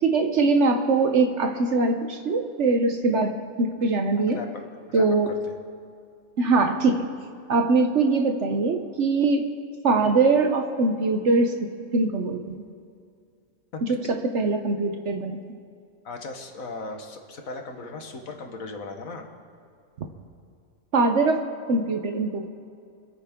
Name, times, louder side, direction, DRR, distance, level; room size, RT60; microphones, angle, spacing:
voice 1, 0.0-4.4 4.9-5.3 6.4-7.1 7.5-9.4 9.8-12.6 13.8-14.0 14.3-15.4 20.9-21.4 21.7-22.5, right 3 dB, 55° right, 5 dB, 1.1 m, -22 dB
voice 2, 4.2-4.5 4.9-5.6 13.7-13.8 16.0-19.2, left 3 dB, 65° left, 4 dB, 1.7 m, -37 dB
25.5 x 9.0 x 3.7 m, 2.4 s
omnidirectional pair, 1.6 m